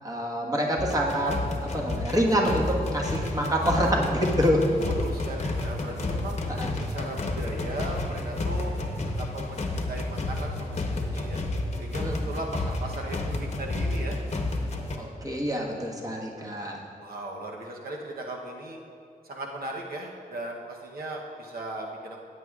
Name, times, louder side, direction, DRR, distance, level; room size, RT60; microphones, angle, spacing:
voice 1, 0.0-1.4 1.7-4.6 6.5-6.7 12.0-12.1 15.0-16.8, equal, 25° right, -2 dB, 1.4 m, -26 dB
sound 1, 0.8-15.0, left 2 dB, 45° left, 0.9 m, -30 dB
voice 2, 4.7-6.4 6.7-8.8 9.2-11.4 11.8-14.2 17.0-18.8 19.3-22.2, right 2 dB, 75° right, 0 dB, 0.9 m, -37 dB
15.5 x 9.4 x 2.4 m, 2.4 s
wide cardioid pair, 120°, 16 cm